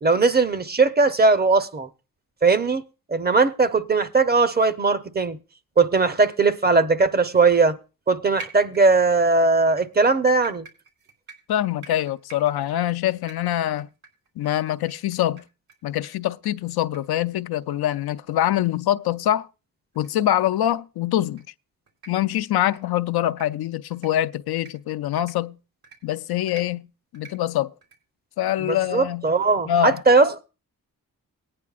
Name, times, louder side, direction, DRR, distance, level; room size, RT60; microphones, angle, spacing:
voice 1, 0.0-1.9 2.4-2.8 3.1-5.4 5.8-7.8 8.1-10.6 28.6-30.4, right 3 dB, 25° right, 0.7 m, -19 dB
sound 1, 8.4-9.2 9.7-15.7 16.0-16.1 16.4-16.5 16.9-17.0 17.3-17.4 17.9-18.0 18.3-18.4 18.9-19.0 19.9-20.1 20.5-20.7 21.2-21.4 21.9-22.1 22.6-22.8 23.3-23.5 23.9-24.1 24.6-24.7 25.2-25.3 25.8-26.0 26.5-26.6 27.1-27.3 27.8-28.0, right 4 dB, 80° right, 3.2 m, -45 dB
voice 2, 11.5-13.9 14.4-15.4 15.8-19.5 20.0-21.4 22.1-25.6 26.0-26.9 27.1-27.7 28.4-29.3 29.7-30.0, left 12 dB, 90° left, 0.5 m, -24 dB
19.0 x 9.6 x 2.4 m
cardioid pair, 85°, 36 cm